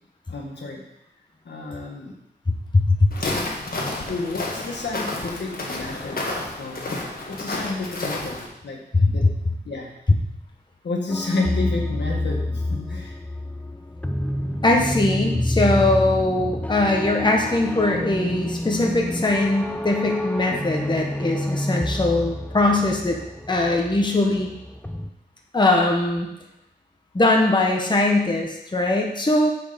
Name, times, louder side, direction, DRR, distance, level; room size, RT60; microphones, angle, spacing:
voice 1, 0.3-0.8 1.5-2.1 4.0-7.0 7.3-9.3 9.7-9.9 10.8-13.2, left 3 dB, 85° left, 0 dB, 1.7 m, -30 dB
voice 2, 2.7-3.1 8.9-9.3 14.6-23.2 23.5-24.5 25.5-26.3 27.1-29.5, left 2 dB, 25° left, 1 dB, 1.1 m, -21 dB
Walk footsteps, 3.1-8.5, left 2 dB, 55° left, 1.7 m, -30 dB
sound 1, 11.1-25.1, left 1 dB, 10° left, 0.5 m, -28 dB
7.3 x 6.6 x 5.1 m, 0.85 s
wide cardioid pair, 120°, 18 cm